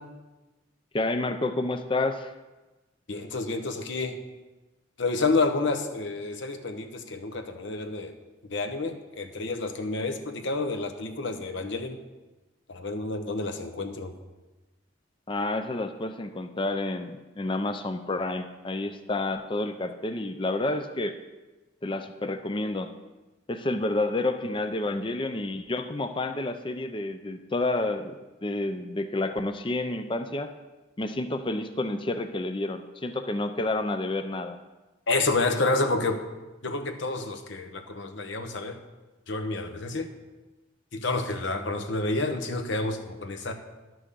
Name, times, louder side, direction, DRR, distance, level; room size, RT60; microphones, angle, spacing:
voice 1, 0.9-2.3 15.3-17.1 17.4-21.1 21.8-22.9 23.5-28.2 28.4-30.5 31.0-34.6, left 2 dB, 25° left, 8 dB, 0.5 m, -29 dB
voice 2, 3.1-4.2 5.0-8.1 8.5-12.0 12.7-14.1 35.1-36.2 36.6-38.8 39.3-40.1 40.9-43.5, left 3 dB, 70° left, 6 dB, 1.1 m, -29 dB
11.0 x 6.2 x 6.8 m, 1.1 s
head